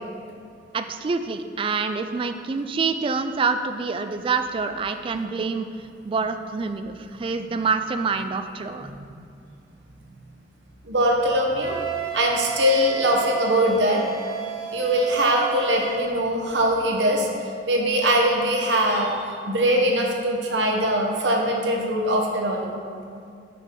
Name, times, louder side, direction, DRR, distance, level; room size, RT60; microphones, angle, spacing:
voice 1, 0.7-5.7 6.0-8.9, right 4 dB, 30° right, 8 dB, 0.3 m, -26 dB
voice 2, 10.8-11.8 12.1-14.0 14.7-22.7, equal, 85° right, 0 dB, 0.9 m, -22 dB
Wind instrument woodwind instrument, 11.6-16.1, right 7 dB, 65° right, 1.4 m, -32 dB
5.8 x 5.8 x 3.7 m, 2.4 s
head